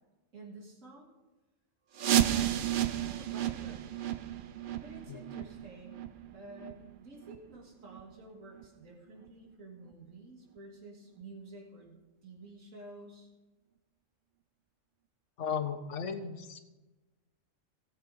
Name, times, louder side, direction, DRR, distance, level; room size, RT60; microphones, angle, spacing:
voice 1, 0.3-1.1 1.9-3.9 4.8-12.0 12.2-13.3, right 2 dB, 85° right, -2 dB, 2.4 m, -51 dB
sound 1, 2.0-7.5 7.9-8.0 8.5-8.6 9.3-9.4 9.9-10.0, right 12 dB, 60° right, 0.6 m, -32 dB
voice 2, 5.1-5.4 15.4-16.6, left 7 dB, 70° left, 7 dB, 1.3 m, -36 dB
18.5 x 7.3 x 3.8 m, 1.1 s
omnidirectional pair, 1.3 m